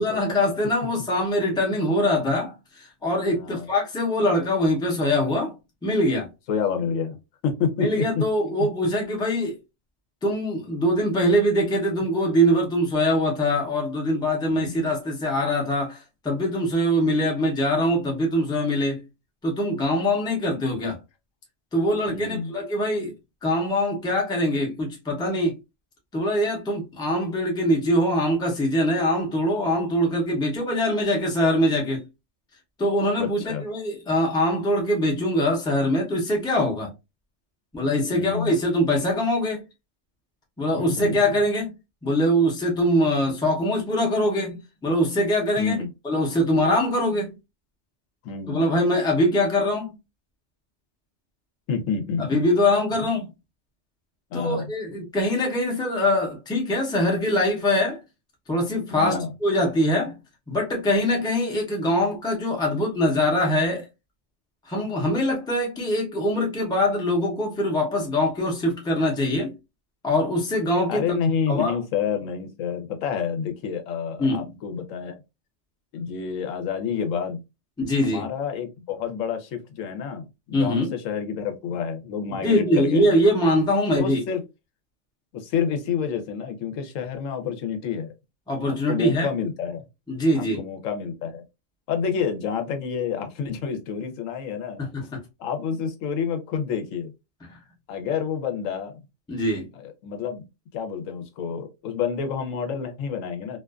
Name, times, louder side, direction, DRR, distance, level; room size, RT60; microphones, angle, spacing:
voice 1, 0.0-5.5 5.8-6.3 7.8-9.6 10.2-19.0 19.4-21.0 21.7-23.1 23.4-25.6 26.1-32.0 32.8-36.9 37.7-39.6 40.6-41.7 42.0-47.3 48.5-49.9 52.3-53.3 54.3-58.0 58.5-60.1 60.5-63.9 64.7-69.5 70.0-71.2 71.5-71.8 74.2-74.5 77.8-78.3 80.5-80.9 82.4-84.2 88.5-89.3 90.1-90.6 94.8-95.2 97.5-97.6 99.3-99.7, left 1 dB, 5° left, 0.4 m, -23 dB
voice 2, 3.3-3.7 6.5-7.2 7.4-8.2 8.6-8.7 14.5-14.9 22.1-22.5 33.2-33.6 38.1-38.5 40.7-41.4 45.6-45.9 48.2-48.6 51.7-52.4 54.3-54.7 58.9-59.3 70.9-75.2 75.9-77.4 78.0-83.1 83.9-84.4 85.3-88.1 88.7-89.8 90.4-91.4 91.9-94.8 95.4-97.1 97.9-99.0 99.7-100.4 100.7-103.6, left 6 dB, 90° left, 1.0 m, -29 dB
2.4 x 2.2 x 2.3 m
omnidirectional pair, 1.3 m